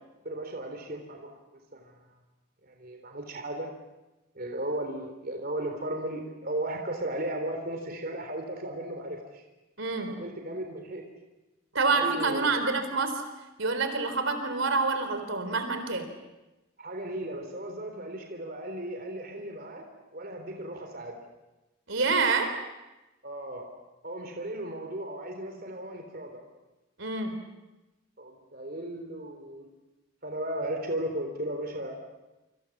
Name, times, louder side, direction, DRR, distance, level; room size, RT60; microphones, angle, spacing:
voice 1, 0.2-1.3 1.7-2.0 2.6-3.7 4.4-9.4 10.1-11.0 11.9-12.6 16.8-19.8 20.1-21.2 23.2-23.7 24.0-26.4 28.2-29.7 30.2-31.9, right 1 dB, 45° right, 3 dB, 3.6 m, -35 dB
voice 2, 9.8-10.1 11.7-13.2 13.6-16.1 21.9-22.5 27.0-27.3, right 4 dB, 65° right, 7 dB, 3.9 m, -27 dB
28.0 x 26.5 x 7.4 m, 1.0 s
head